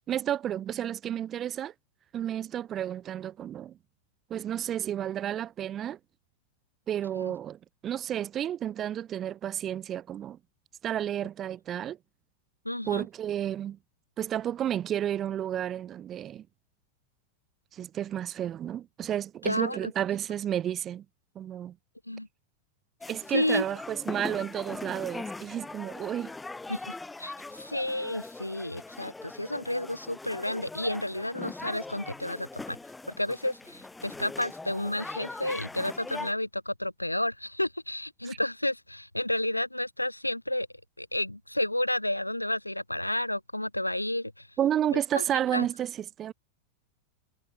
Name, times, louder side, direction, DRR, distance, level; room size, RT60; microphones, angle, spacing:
voice 1, 0.1-1.7 2.1-3.8 4.3-6.0 6.9-10.4 10.8-12.0 12.8-13.8 14.2-16.5 17.7-21.0 21.4-21.8 23.1-26.3 38.2-38.4 44.6-46.3, right 10 dB, 30° right, 3.8 m, -31 dB
voice 2, 12.6-13.0 19.4-19.9 22.1-22.3 23.3-23.6 26.7-26.9 27.2-32.8 33.2-40.7 41.0-44.5 44.9-45.2 45.5-45.7, left 1 dB, 85° left, 1.0 m, -31 dB
sound 1, 23.0-36.3, left 3 dB, 10° left, 1.3 m, -41 dB
figure-of-eight pair, 90°, 0 cm